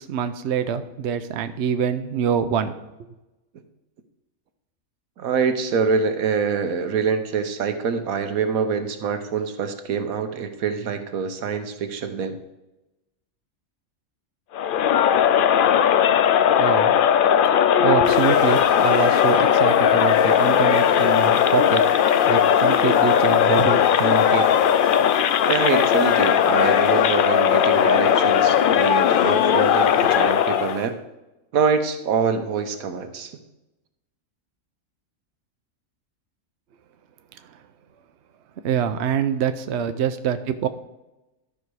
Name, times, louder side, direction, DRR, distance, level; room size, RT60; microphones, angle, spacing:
voice 1, 0.0-2.7 16.6-16.9 17.8-21.8 22.3-24.6 38.6-40.7, right 8 dB, 60° right, 10 dB, 0.8 m, -25 dB
voice 2, 5.2-12.4 25.5-30.9 31.5-33.4, right 6 dB, 85° right, 8 dB, 1.3 m, -25 dB
Crowd, 14.5-30.8, left 9 dB, 85° left, 0.4 m, -18 dB
Fire, 18.0-30.9, left 1 dB, 65° left, 3.6 m, -43 dB
12.5 x 5.5 x 4.7 m, 0.99 s
omnidirectional pair, 1.4 m